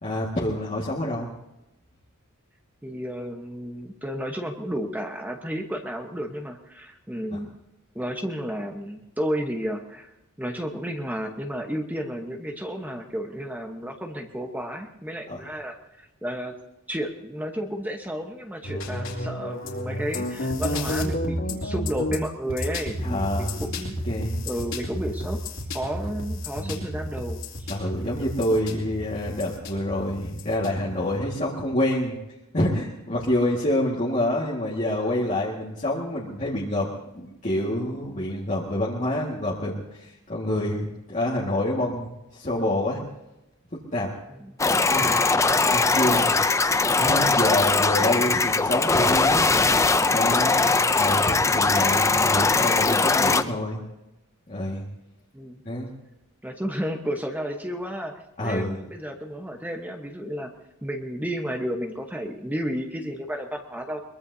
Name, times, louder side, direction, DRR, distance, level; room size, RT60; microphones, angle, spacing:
voice 1, 0.0-1.3 7.3-7.4 15.3-15.4 23.0-23.6 24.0-24.5 26.5-26.8 27.7-32.2 32.5-43.0 43.9-44.1 44.8-45.1 45.7-46.3 47.0-49.5 50.1-53.8 54.5-54.8 55.6-55.9 58.4-58.8, left 1 dB, 35° left, -5 dB, 1.9 m, -27 dB
voice 2, 2.8-7.6 7.9-10.1 10.4-16.5 16.9-23.9 24.5-25.4 25.7-27.7 44.4-44.5 47.8-48.1 55.3-55.6 56.4-58.1 58.4-60.5 60.8-64.0, equal, 10° right, 3 dB, 1.1 m, -32 dB
sound 1, 18.6-31.2, left 1 dB, 60° left, 3.2 m, -31 dB
sound 2, 44.6-53.4, left 3 dB, 15° left, 0.4 m, -20 dB
22.5 x 22.5 x 2.8 m, 0.94 s
head